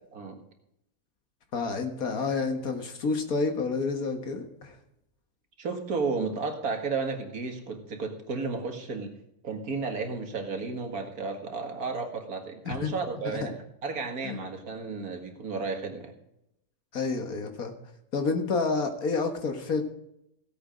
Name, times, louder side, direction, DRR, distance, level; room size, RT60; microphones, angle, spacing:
voice 1, 1.5-4.8 12.7-12.9 13.2-13.5 14.2-14.5 16.9-17.7 18.1-19.8, left 4 dB, 70° left, 6 dB, 2.0 m, -29 dB
voice 2, 5.6-9.1 9.4-13.5 13.8-16.1, right 4 dB, 75° right, 5 dB, 2.2 m, -33 dB
16.5 x 8.5 x 5.1 m, 0.81 s
omnidirectional pair, 1.6 m